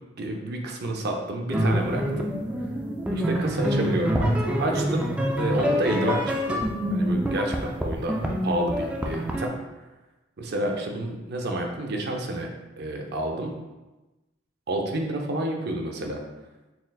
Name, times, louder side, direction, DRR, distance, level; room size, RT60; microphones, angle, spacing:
voice 1, 0.2-2.3 3.1-5.1 5.4-6.6 6.9-8.2 8.4-9.5 10.4-12.5 12.8-13.5 14.7-16.2, right 1 dB, 55° right, 2 dB, 0.5 m, -29 dB
sound 1, 1.5-9.5, equal, 5° right, 0.3 m, -26 dB
4.2 x 3.8 x 2.3 m, 1.1 s
head